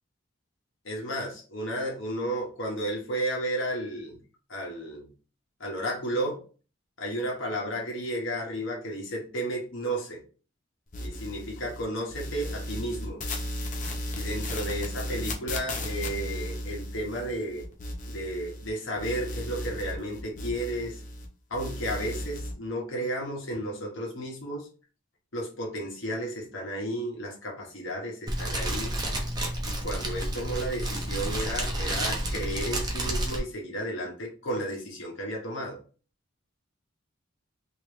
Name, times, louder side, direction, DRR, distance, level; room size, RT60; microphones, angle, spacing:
voice 1, 0.8-4.2 4.5-5.1 5.6-6.4 7.0-10.2 11.0-13.2 14.1-17.6 18.0-21.0 21.5-24.7 25.3-28.9 29.6-35.8, right 1 dB, 70° left, -1 dB, 1.4 m, -33 dB
sound 1, 10.9-11.8 12.1-18.7 19.0-21.3 21.5-22.5, left 1 dB, 40° left, 0.7 m, -35 dB
Fire, 28.3-33.4, right 1 dB, 20° right, 0.6 m, -30 dB
3.1 x 3.1 x 3.3 m, 0.38 s
head